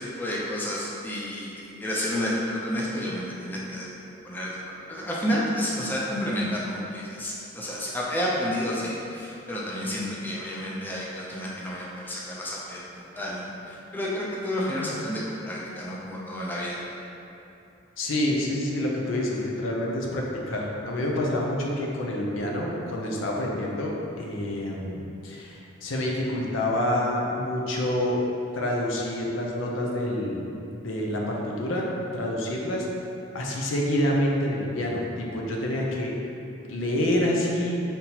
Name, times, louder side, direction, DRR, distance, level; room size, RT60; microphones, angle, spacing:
voice 1, 0.2-1.5 1.8-3.9 4.2-4.5 4.9-12.8 13.2-16.8, equal, 10° left, -6 dB, 0.5 m, -30 dB
voice 2, 18.0-28.2 28.5-30.4 30.7-32.9 33.3-36.1 36.7-37.8, left 1 dB, 80° left, -2 dB, 0.6 m, -27 dB
5.3 x 2.8 x 2.9 m, 2.8 s
head